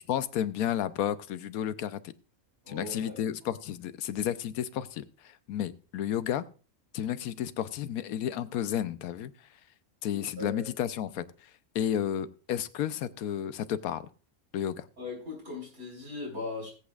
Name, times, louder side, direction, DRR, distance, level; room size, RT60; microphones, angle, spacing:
voice 1, 0.1-2.1 2.7-6.5 6.9-9.3 10.0-14.1 14.5-14.9, left 10 dB, 85° left, 14 dB, 1.1 m, -32 dB
voice 2, 2.6-3.2 10.1-10.6 15.0-16.7, left 2 dB, 55° right, -2 dB, 5.3 m, -39 dB
19.0 x 8.2 x 2.4 m, 0.37 s
omnidirectional pair, 1.5 m